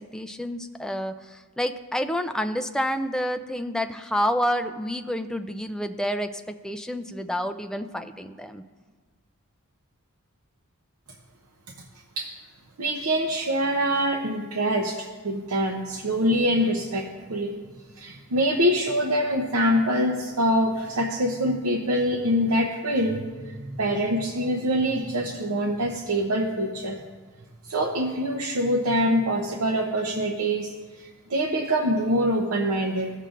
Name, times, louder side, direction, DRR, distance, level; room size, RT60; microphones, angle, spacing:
voice 1, 0.0-6.3 6.6-8.6, equal, 5° left, 7 dB, 0.3 m, -29 dB
voice 2, 12.8-17.5 18.0-27.0 27.6-33.1, equal, 70° right, 1 dB, 0.7 m, -25 dB
17.0 x 6.5 x 2.5 m, 1.4 s
head